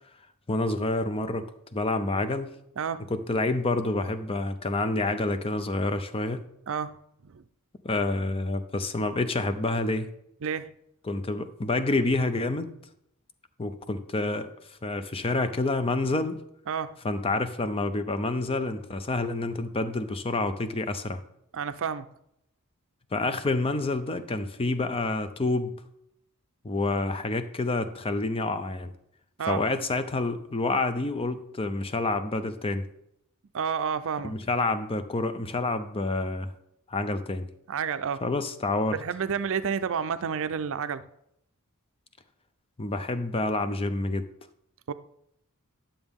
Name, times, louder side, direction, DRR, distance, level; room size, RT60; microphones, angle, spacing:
voice 1, 0.5-2.5 3.1-6.4 7.8-10.1 11.0-12.7 13.6-16.4 17.0-21.2 23.1-25.7 26.6-28.9 29.4-32.9 34.2-36.5 36.9-37.5 38.2-39.0 42.8-44.3, left 2 dB, 25° left, 0.5 m, -28 dB
voice 2, 2.8-3.1 6.7-7.0 7.2-7.4 10.4-10.7 16.7-16.9 21.5-22.1 29.4-29.6 33.5-34.3 37.7-38.2 38.9-41.0 44.9-45.0, right 6 dB, 60° right, 0.5 m, -30 dB
10.5 x 7.1 x 3.6 m
head